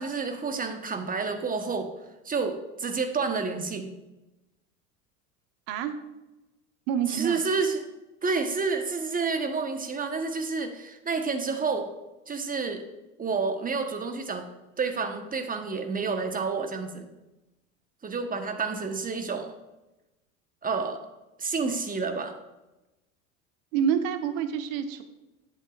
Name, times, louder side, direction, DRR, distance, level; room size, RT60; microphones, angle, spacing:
voice 1, 0.0-1.9 2.2-3.9 7.1-7.9 8.2-11.9 12.3-12.8 13.2-14.5 14.8-17.1 18.0-19.5 20.6-21.0 21.4-22.3, right 4 dB, 20° right, 6 dB, 1.1 m, -29 dB
voice 2, 6.9-7.4 23.7-25.0, right 8 dB, 65° right, 8 dB, 1.1 m, -27 dB
10.0 x 8.0 x 2.4 m, 1.0 s
hypercardioid pair, 80°, 42 cm